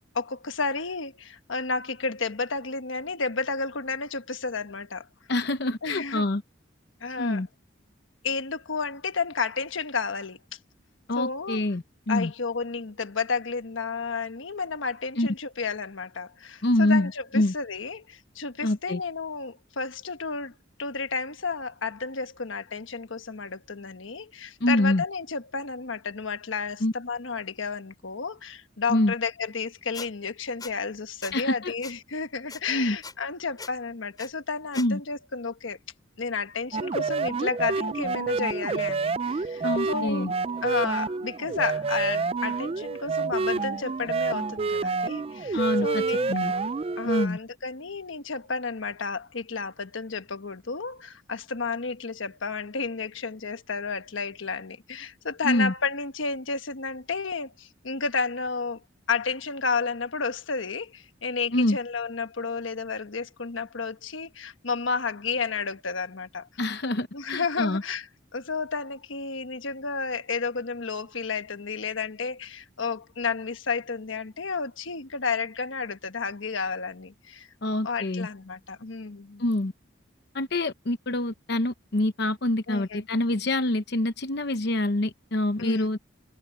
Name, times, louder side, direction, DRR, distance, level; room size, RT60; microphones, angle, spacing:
voice 1, 0.1-5.1 5.8-6.2 7.0-7.4 8.2-10.4 11.2-11.6 12.1-20.5 20.8-35.8 36.2-40.3 40.6-46.4 47.0-58.8 59.1-66.5 67.1-68.1 68.3-77.5 77.8-79.4 82.7-83.1 85.6-85.9, left 4 dB, 80° left, 1.2 m, -31 dB
voice 2, 5.3-6.4 7.2-7.5 11.1-12.3 15.2-15.3 16.6-17.5 18.6-19.0 24.6-25.0 26.8-26.9 28.9-29.1 31.3-31.7 32.7-33.0 34.8-35.0 39.6-40.3 45.5-46.0 46.3-46.5 47.0-47.4 55.4-55.7 61.5-61.8 66.6-67.8 77.6-78.3 79.4-79.7 80.3-86.0, left 1 dB, 55° left, 0.9 m, -26 dB
Squeak, 29.9-30.1 30.6-30.7 31.2-31.4 31.8-31.9 32.5-32.6 33.0-33.1 33.6-33.7 34.2-34.3 34.7-34.9, left 4 dB, 20° left, 7.8 m, -39 dB
midian gates, 36.7-47.3, right 4 dB, 30° right, 0.4 m, -28 dB
head